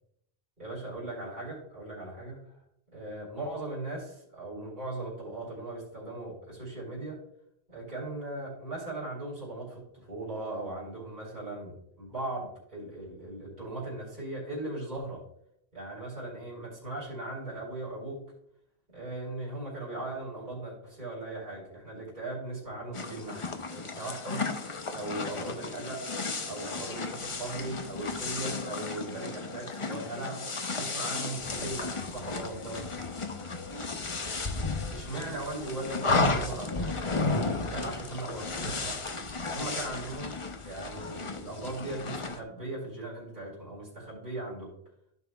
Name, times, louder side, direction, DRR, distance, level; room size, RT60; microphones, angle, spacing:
voice 1, 0.6-2.6 2.9-7.2 7.7-15.2 15.7-18.2 18.9-24.4 24.9-26.0 26.4-30.5 30.7-32.9 34.9-39.0 39.5-40.4 40.6-44.7, right 2 dB, 50° right, -8 dB, 4.1 m, -38 dB
sound 1, 22.9-42.4, left 3 dB, 35° left, 0.8 m, -34 dB
15.0 x 5.8 x 2.3 m, 0.72 s
omnidirectional pair, 1.1 m